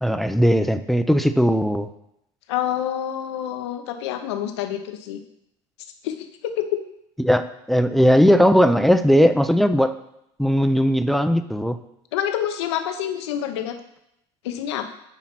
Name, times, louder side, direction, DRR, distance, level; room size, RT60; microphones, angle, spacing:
voice 1, 0.0-1.9 7.2-9.9 10.4-11.8, equal, ahead, 10 dB, 0.4 m, -18 dB
voice 2, 2.5-5.2 6.0-6.8 12.1-13.8 14.4-14.9, left 10 dB, 85° left, 8 dB, 0.8 m, -27 dB
8.8 x 3.0 x 5.8 m, 0.79 s
supercardioid pair, 90°, 14 cm